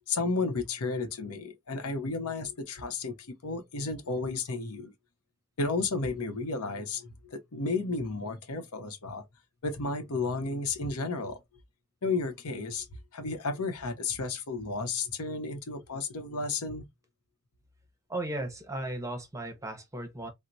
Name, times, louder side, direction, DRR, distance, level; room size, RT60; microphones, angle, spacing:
voice 1, 0.1-4.9 5.6-9.2 9.6-11.4 12.0-12.9 13.1-16.8, left 3 dB, 85° left, 0.8 m, -32 dB
voice 2, 18.1-20.3, right 1 dB, 15° right, 0.7 m, -36 dB
4.4 x 2.0 x 2.6 m
head